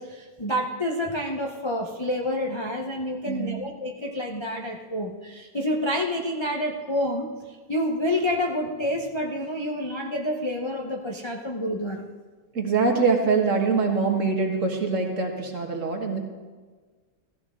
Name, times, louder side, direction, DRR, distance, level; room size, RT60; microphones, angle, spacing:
voice 1, 0.0-12.1, left 1 dB, 30° left, 0 dB, 0.5 m, -28 dB
voice 2, 3.3-3.6 12.5-16.2, right 4 dB, 45° right, 2 dB, 1.7 m, -24 dB
15.0 x 14.0 x 3.7 m, 1.5 s
omnidirectional pair, 2.0 m